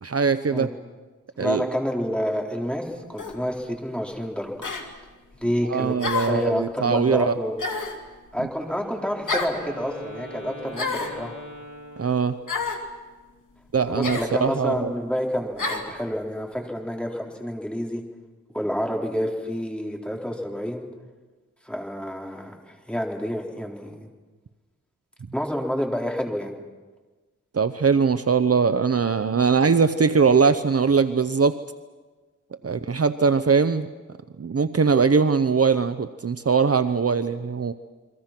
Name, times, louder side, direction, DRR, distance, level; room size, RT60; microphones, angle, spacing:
voice 1, 0.0-0.7 1.4-1.7 5.7-7.3 12.0-12.3 13.7-14.9 27.5-31.6 32.6-33.9 34.4-37.7, right 5 dB, 50° right, 11 dB, 0.8 m, -21 dB
voice 2, 1.3-4.6 5.4-6.0 6.3-7.6 8.3-11.4 13.9-18.0 18.5-20.9 21.6-24.1 25.3-26.5 32.6-32.8, equal, 5° left, 0 dB, 4.0 m, -29 dB
sound 1, 3.2-3.4 4.6-4.9 6.0-6.4 7.6-8.0 9.3-9.6 10.7-11.2 12.5-12.8 14.0-14.3 15.6-15.9, left 3 dB, 75° left, 2.8 m, -28 dB
Wind instrument woodwind instrument, 8.5-12.6, equal, 75° right, 7.3 m, -42 dB
29.5 x 23.0 x 6.0 m, 1.3 s
wide cardioid pair, 95°, 31 cm